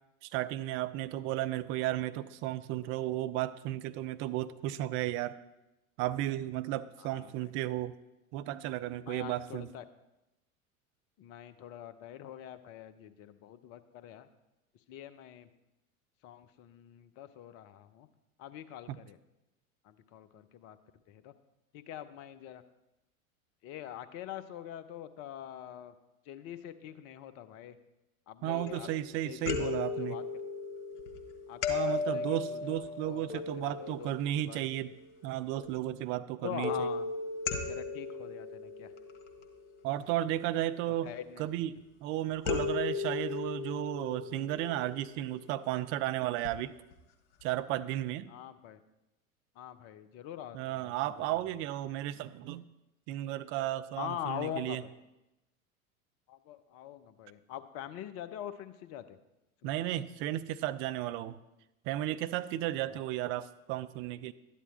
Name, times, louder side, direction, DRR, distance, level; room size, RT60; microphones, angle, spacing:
voice 1, 0.2-5.4 6.0-7.9 8.3-9.7 18.9-19.0 28.4-30.2 31.7-35.0 35.2-36.9 39.8-41.1 41.4-41.8 42.0-46.7 47.4-48.3 50.5-52.6 53.1-54.8 59.6-61.4 61.8-64.3, right 14 dB, 30° right, 12 dB, 0.5 m, -34 dB
voice 2, 7.0-7.5 9.0-9.8 11.2-14.3 14.9-15.5 16.2-18.1 18.4-19.2 19.8-20.8 21.1-21.3 21.7-22.6 23.6-25.9 26.3-27.8 28.3-28.9 29.2-30.2 31.5-34.7 36.4-37.1 37.7-38.9 41.0-41.4 42.4-42.7 48.3-48.8 49.6-51.3 54.0-54.9 56.3-59.2 59.6-59.8 62.9-63.0, left 11 dB, 35° left, 12 dB, 0.9 m, -44 dB
sound 1, 28.6-29.1 29.4-35.0 36.6-39.9 42.4-45.7 46.4-46.5 46.9-47.0, left 5 dB, 55° left, 1.7 m, -36 dB
12.5 x 10.0 x 4.3 m, 0.94 s
figure-of-eight pair, 85°, 43 cm